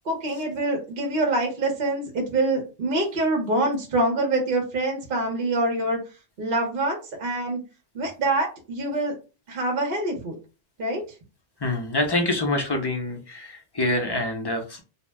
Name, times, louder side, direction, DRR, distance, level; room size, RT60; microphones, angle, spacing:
voice 1, 0.0-6.0 6.4-7.6 7.9-9.1 9.5-10.3 10.8-11.0, right 2 dB, 55° right, 1 dB, 0.9 m, -25 dB
voice 2, 11.6-14.8, left 1 dB, 35° left, 3 dB, 0.4 m, -26 dB
2.8 x 2.0 x 3.3 m, 0.32 s
omnidirectional pair, 1.2 m